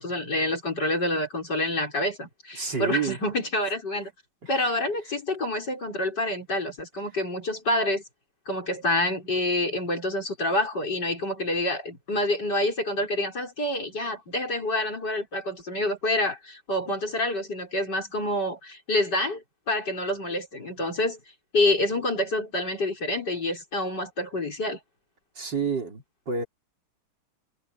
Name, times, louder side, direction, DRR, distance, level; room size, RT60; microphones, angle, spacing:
voice 1, 0.0-4.1 4.5-8.0 8.5-21.2 21.5-24.8, left 1 dB, 50° left, 6.6 m, -27 dB
voice 2, 2.6-3.2 3.6-3.7 4.4-4.7 5.0-5.1 25.4-26.4, right 6 dB, 55° right, 4.1 m, -30 dB
omnidirectional pair, 2.3 m